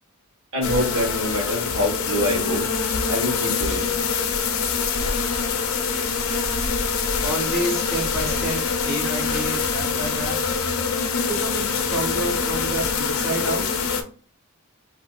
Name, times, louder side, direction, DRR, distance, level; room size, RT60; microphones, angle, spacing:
voice 1, 0.5-2.6 3.1-3.9 5.0-5.2, equal, 70° right, -1 dB, 1.2 m, -25 dB
sound 1, 0.6-14.0, left 5 dB, 75° left, 0.5 m, -24 dB
voice 2, 7.2-10.4 11.2-13.6, right 1 dB, 10° right, -2 dB, 0.6 m, -29 dB
3.4 x 2.7 x 2.2 m, 0.40 s
head